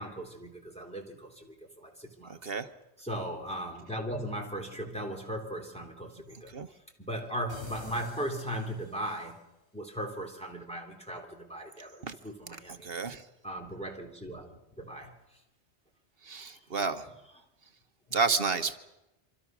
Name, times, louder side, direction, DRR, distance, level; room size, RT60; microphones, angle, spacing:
voice 1, 0.0-2.5 3.0-9.4 9.7-12.9 13.4-14.5 14.8-15.1 16.5-16.6 18.1-18.2, equal, 5° left, 0 dB, 3.2 m, -38 dB
voice 2, 2.3-2.7 6.5-6.7 12.0-12.2 12.8-13.2 16.2-17.1 18.1-18.8, right 4 dB, 55° right, 9 dB, 1.3 m, -30 dB
sound 1, 7.5-9.3, left 1 dB, 80° left, 6.3 m, -49 dB
26.0 x 25.5 x 6.2 m, 0.97 s
omnidirectional pair, 1.2 m